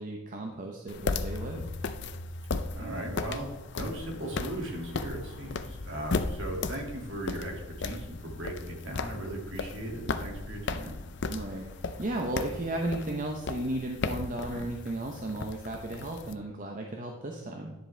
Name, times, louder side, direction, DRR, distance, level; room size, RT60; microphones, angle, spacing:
voice 1, 0.0-1.7 11.3-17.7, right 1 dB, 35° right, 1 dB, 0.8 m, -35 dB
sound 1, 0.9-16.3, left 3 dB, 50° left, 0.5 m, -36 dB
voice 2, 2.7-11.0, right 1 dB, 55° right, 0 dB, 2.2 m, -38 dB
10.5 x 7.4 x 3.3 m, 1.1 s
head